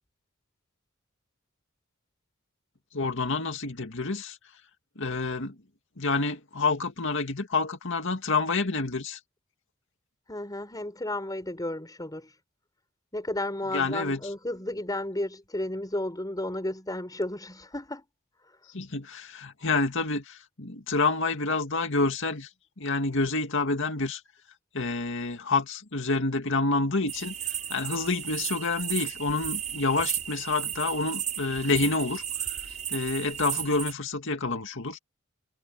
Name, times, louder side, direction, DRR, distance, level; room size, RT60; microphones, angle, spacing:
voice 1, 2.9-4.4 5.0-5.5 6.0-9.2 13.7-14.2 18.7-22.5 22.8-24.2 24.7-27.3 27.7-32.2 32.9-35.0, left 3 dB, 65° left, 2.2 m, -28 dB
voice 2, 10.3-12.3 13.1-18.0, left 1 dB, 20° left, 5.9 m, -33 dB
sound 1, 27.1-33.9, right 9 dB, 35° right, 6.4 m, -34 dB
head